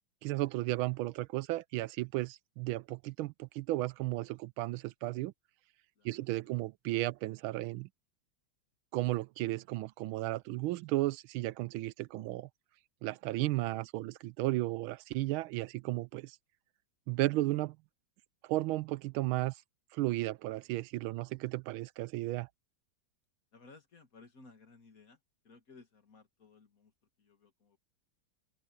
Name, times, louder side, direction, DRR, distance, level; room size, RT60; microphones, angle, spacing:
voice 1, 0.2-5.3 6.0-7.9 8.9-12.5 13.0-16.4 17.1-17.8 18.5-19.5 19.9-22.5, right 17 dB, 90° right, 1.4 m, -34 dB
voice 2, 6.0-6.5 23.5-26.9 27.2-27.8, left 3 dB, 45° left, 2.3 m, -59 dB
open air
omnidirectional pair, 2.2 m